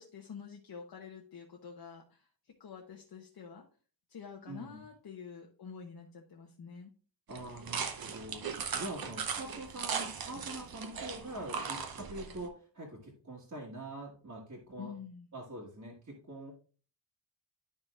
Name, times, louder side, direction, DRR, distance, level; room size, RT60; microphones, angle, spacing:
voice 1, 0.0-2.3 2.6-3.6 4.1-6.9 14.8-15.3, left 6 dB, 55° left, 1 dB, 1.0 m, -48 dB
voice 2, 4.5-4.8 7.3-15.0 15.3-16.5, right 1 dB, 35° right, -5 dB, 1.6 m, -44 dB
sound 1, 7.3-12.5, right 6 dB, 50° right, 0.8 m, -38 dB
11.0 x 5.5 x 2.4 m, 0.38 s
wide cardioid pair, 165°, 45 cm